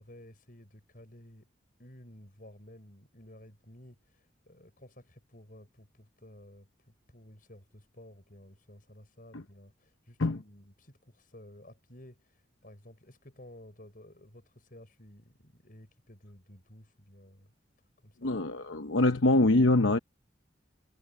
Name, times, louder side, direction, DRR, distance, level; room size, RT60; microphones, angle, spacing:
voice 1, 0.0-1.5 1.8-17.5 18.0-18.3, left 1 dB, 45° left, 6.8 m, -54 dB
voice 2, 18.2-20.0, left 2 dB, 85° left, 0.9 m, -24 dB
head